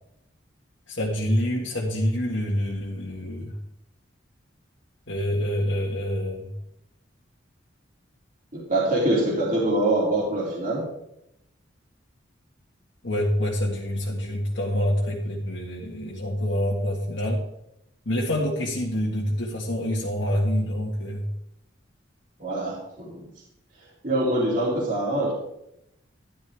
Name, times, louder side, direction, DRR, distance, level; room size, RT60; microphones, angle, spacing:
voice 1, 0.9-3.6 5.1-6.5 13.0-17.4 18.1-21.3, equal, 70° left, -4 dB, 1.7 m, -26 dB
voice 2, 8.5-10.8 22.4-23.3 24.0-25.3, right 1 dB, 45° right, -5 dB, 3.0 m, -24 dB
12.5 x 12.0 x 3.5 m, 0.80 s
head